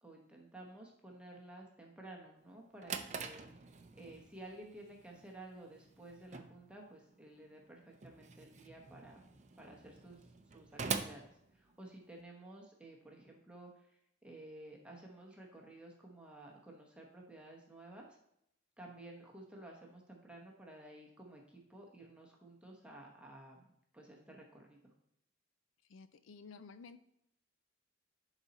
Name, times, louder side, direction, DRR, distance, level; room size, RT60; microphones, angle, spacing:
voice 1, 0.0-3.7 4.0-9.2 9.6-10.2 10.5-18.1 18.8-24.8, right 1 dB, 5° right, -1 dB, 1.0 m, -53 dB
Drawer open or close, 2.5-12.2, right 5 dB, 35° right, 0.5 m, -45 dB
voice 2, 25.9-27.0, left 4 dB, 75° left, 11 dB, 0.5 m, -53 dB
11.0 x 4.1 x 4.1 m, 0.76 s
head